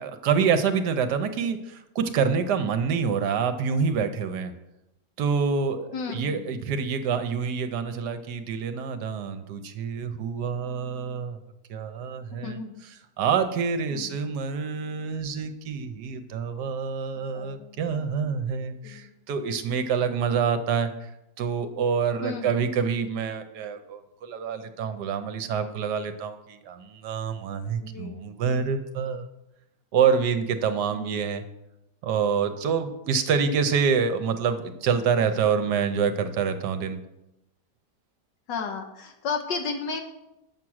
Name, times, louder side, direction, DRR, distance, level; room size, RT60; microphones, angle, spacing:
voice 1, 0.0-4.5 5.2-11.4 11.7-21.1 21.4-29.3 29.9-31.4 32.0-37.0, right 6 dB, 70° right, 9 dB, 1.2 m, -27 dB
voice 2, 5.9-6.5 12.3-12.8 13.9-14.1 17.2-17.8 18.8-19.1 22.2-22.5 27.8-28.3 30.9-31.2 38.5-40.0, left 5 dB, 75° left, 4 dB, 1.4 m, -34 dB
7.3 x 5.9 x 6.2 m, 0.90 s
omnidirectional pair, 1.9 m